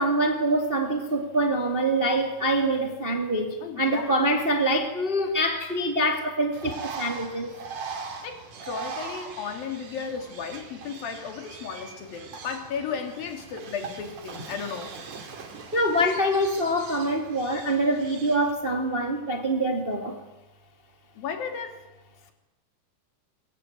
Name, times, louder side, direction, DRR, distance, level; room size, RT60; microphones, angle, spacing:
voice 1, 0.0-7.5 15.7-20.2, right 1 dB, 20° right, 4 dB, 1.5 m, -25 dB
voice 2, 3.6-4.4 8.0-15.0 21.2-21.8, left 6 dB, 65° left, 5 dB, 4.5 m, -35 dB
Bird, 6.5-18.5, right 5 dB, 50° right, 3.7 m, -40 dB
24.0 x 22.0 x 9.5 m, 1.0 s
omnidirectional pair, 4.6 m